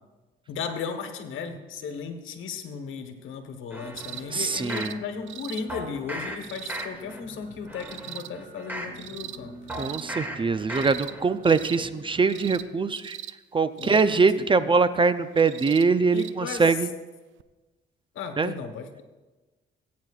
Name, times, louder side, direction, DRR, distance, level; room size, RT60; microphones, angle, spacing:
voice 1, 0.5-9.6 13.7-14.7 16.1-16.7 18.1-19.0, left 6 dB, 80° left, 6 dB, 1.3 m, -36 dB
sound 1, 3.7-5.0 5.7-6.4 6.7-7.2 7.6-9.0 9.7-10.4 10.7-11.2 11.6-11.7, equal, 10° right, 1.6 m, -36 dB
sound 2, 4.0-12.5, right 3 dB, 45° right, 2.2 m, -49 dB
sound 3, 4.0-4.2 4.5-4.9 5.3-5.6 6.4-6.9 7.8-8.3 8.9-9.4 9.7-10.0 10.7-11.2 11.4-11.8 12.3-12.6 12.9-13.3 13.8-14.1 15.4-15.8 16.2-16.3 17.4-17.5, right 12 dB, 75° right, 0.5 m, -40 dB
voice 2, 4.3-4.9 9.7-13.2 13.5-16.9 18.4-18.5, right 4 dB, 25° right, 13 dB, 0.5 m, -23 dB
19.0 x 9.3 x 2.4 m, 1.2 s
cardioid pair, 90°, 20 cm